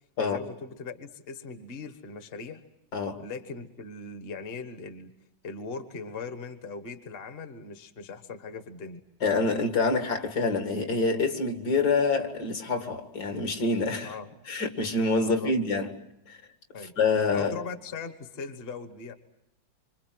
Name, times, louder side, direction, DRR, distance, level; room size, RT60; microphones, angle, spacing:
voice 1, 0.2-2.6 3.2-5.1 5.4-9.0 14.0-14.3 15.3-15.5 16.7-16.9 17.3-19.1, left 4 dB, 35° left, 1.5 m, -39 dB
voice 2, 2.9-3.2 9.2-14.1 14.5-15.9 16.3-16.4 17.0-17.5, left 3 dB, 60° left, 2.8 m, -26 dB
26.5 x 26.0 x 7.7 m
omnidirectional pair, 1.9 m